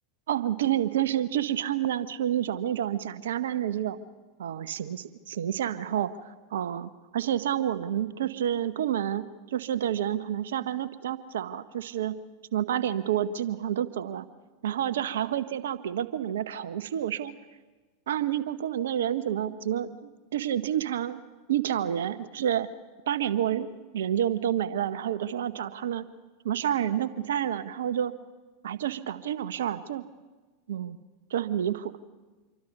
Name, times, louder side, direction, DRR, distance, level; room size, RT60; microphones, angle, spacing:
voice 1, 0.3-4.0 4.4-12.1 12.5-14.2 14.6-17.3 18.1-21.2 21.5-22.7 23.1-26.1 26.4-28.1 28.6-30.0 30.7-31.0 31.3-31.9, right 10 dB, 70° right, 14 dB, 0.9 m, -29 dB
26.5 x 23.5 x 5.4 m, 1.3 s
figure-of-eight pair, 85°, 0 cm